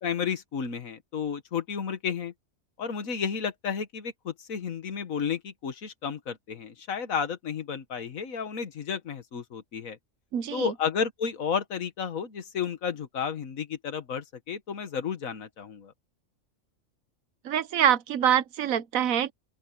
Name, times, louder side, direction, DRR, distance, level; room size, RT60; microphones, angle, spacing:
voice 1, 0.0-2.3 2.8-10.0 10.5-15.9, left 6 dB, 85° left, 1.8 m, -32 dB
voice 2, 10.3-10.7 17.4-19.3, right 9 dB, 90° right, 1.3 m, -25 dB
open air
omnidirectional pair, 1.4 m